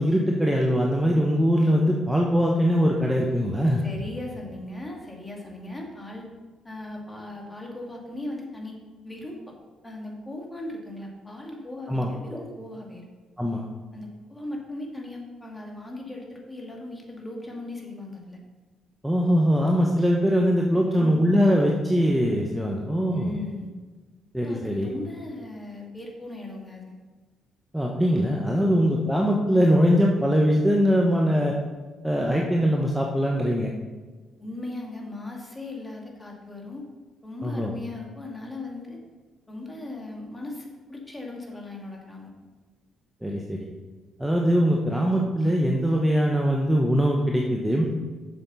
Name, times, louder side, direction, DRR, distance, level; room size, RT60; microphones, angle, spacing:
voice 1, 0.0-3.8 11.9-12.4 13.4-13.6 19.0-23.3 24.3-24.9 27.7-31.5 32.0-33.7 37.4-37.7 43.2-43.7 44.2-47.9, equal, 5° right, -1 dB, 1.1 m, -22 dB
voice 2, 3.8-6.3 6.6-8.8 9.0-9.4 9.8-13.0 13.9-18.4 20.7-21.2 23.1-23.7 24.4-26.9 34.4-36.9 37.2-39.0 39.5-42.3, left 2 dB, 15° left, 0 dB, 2.2 m, -38 dB
7.3 x 7.2 x 5.6 m, 1.3 s
cardioid pair, 90°, 0 cm